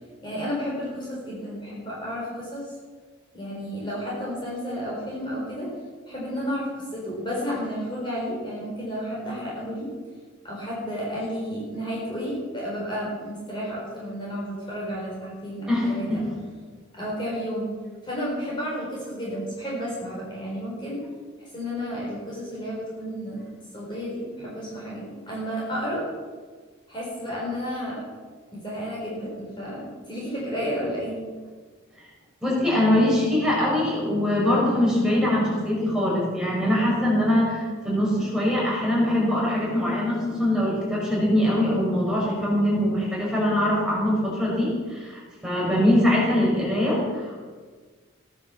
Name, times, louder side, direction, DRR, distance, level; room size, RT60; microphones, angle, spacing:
voice 1, 0.2-2.7 3.3-5.7 6.1-9.9 10.4-16.2 16.9-17.7 18.0-21.0 21.4-23.4 23.7-26.0 26.9-28.1 28.5-31.2, equal, 25° left, -5 dB, 4.5 m, -32 dB
voice 2, 15.7-16.2 32.4-47.4, left 1 dB, 5° right, -5 dB, 5.5 m, -23 dB
16.5 x 10.5 x 7.0 m, 1.5 s
head